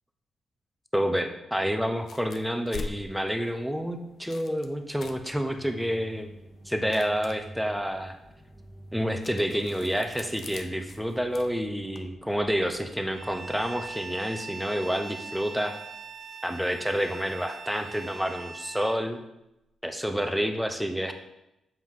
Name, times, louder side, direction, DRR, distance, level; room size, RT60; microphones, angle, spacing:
voice 1, 0.9-6.3 6.7-8.2 8.9-15.7 16.4-19.2 19.8-21.1, equal, ahead, 5 dB, 0.6 m, -29 dB
sound 1, 2.0-12.1, left 4 dB, 60° left, 0.5 m, -46 dB
sound 2, 5.0-13.8, right 1 dB, 15° right, 1.0 m, -49 dB
Bowed string instrument, 13.1-19.0, right 4 dB, 40° right, 0.4 m, -42 dB
7.3 x 4.7 x 3.7 m, 0.90 s
cardioid pair, 110°, 0 cm